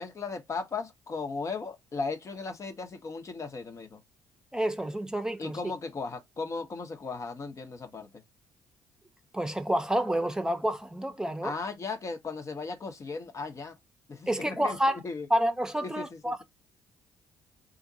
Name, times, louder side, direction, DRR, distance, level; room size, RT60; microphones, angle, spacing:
voice 1, 0.0-4.0 5.4-8.2 11.4-13.8 14.1-15.3 15.8-16.4, left 4 dB, 40° left, 1.1 m, -37 dB
voice 2, 4.5-5.6 9.3-11.5 14.3-15.0 15.3-16.4, equal, 10° right, 0.9 m, -29 dB
4.0 x 2.5 x 2.8 m
hypercardioid pair, 50°, 8 cm